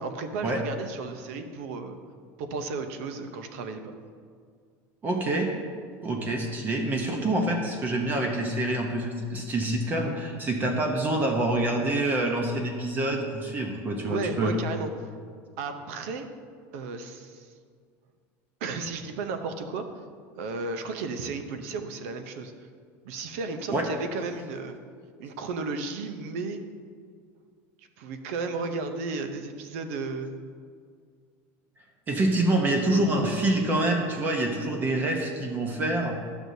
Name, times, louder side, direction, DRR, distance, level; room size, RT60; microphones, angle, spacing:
voice 1, 0.0-2.0 2.4-3.9 14.1-14.9 15.6-16.3 16.7-17.5 18.6-19.9 20.3-22.5 23.0-24.8 25.2-26.6 28.0-30.3, right 4 dB, 80° right, 8 dB, 0.7 m, -34 dB
voice 2, 5.0-5.5 6.0-14.6 23.7-23.8 32.1-36.2, right 1 dB, 25° right, 2 dB, 0.8 m, -26 dB
12.0 x 6.2 x 2.7 m, 2.1 s
supercardioid pair, 145°, 7 cm